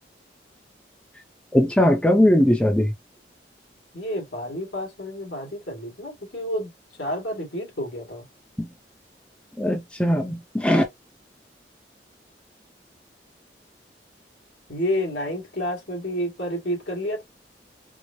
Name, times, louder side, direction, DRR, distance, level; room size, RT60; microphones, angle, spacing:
voice 1, 1.5-2.9 8.6-8.7 9.6-10.8, left 1 dB, 5° left, 0.6 m, -19 dB
voice 2, 3.9-6.7 7.0-8.2 14.7-17.2, equal, 75° left, 2.0 m, -29 dB
4.7 x 2.0 x 2.7 m
head